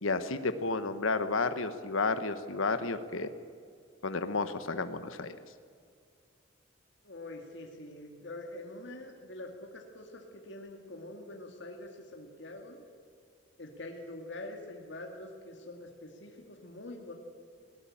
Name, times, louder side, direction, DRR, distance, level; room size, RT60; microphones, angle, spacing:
voice 1, 0.0-3.3 4.0-5.3, left 3 dB, 90° left, 10 dB, 1.1 m, -31 dB
voice 2, 7.0-12.8 13.6-17.1, left 2 dB, 60° left, 2 dB, 2.3 m, -45 dB
20.0 x 18.5 x 8.6 m, 2.2 s
head